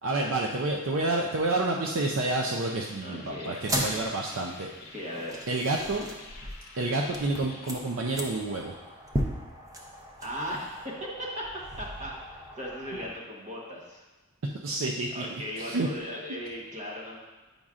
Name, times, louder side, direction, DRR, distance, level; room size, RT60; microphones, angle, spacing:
voice 1, 0.0-4.7 5.5-6.0 6.8-8.7 14.6-15.9, right 2 dB, 65° right, 0 dB, 0.5 m, -29 dB
sound 1, 2.6-7.7, left 3 dB, 45° left, 0.8 m, -50 dB
voice 2, 3.0-3.7 4.9-5.5 10.2-11.5 11.8-14.0 15.1-17.2, equal, 35° right, -4 dB, 1.1 m, -37 dB
sound 2, 3.5-13.1, equal, 15° right, 0.6 m, -37 dB
8.6 x 5.2 x 2.4 m, 1.2 s
head